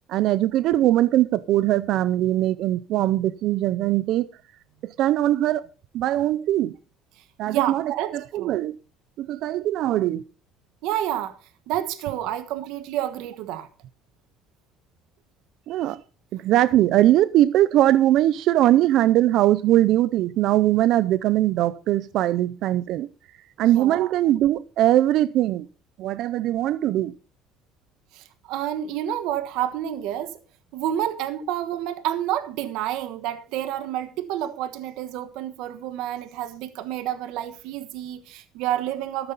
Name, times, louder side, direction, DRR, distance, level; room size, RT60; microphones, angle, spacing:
voice 1, 0.1-4.3 4.8-5.7 5.9-6.7 7.4-8.8 9.2-10.2 15.7-16.0 16.3-23.1 23.6-25.7 26.0-27.1, right 13 dB, 60° right, 0.5 m, -21 dB
voice 2, 7.5-8.5 10.8-11.4 11.7-13.7 23.6-24.1 28.1-30.4 30.7-39.3, right 12 dB, 75° right, 1.3 m, -29 dB
14.0 x 12.0 x 4.0 m
cardioid pair, 140°, 0 cm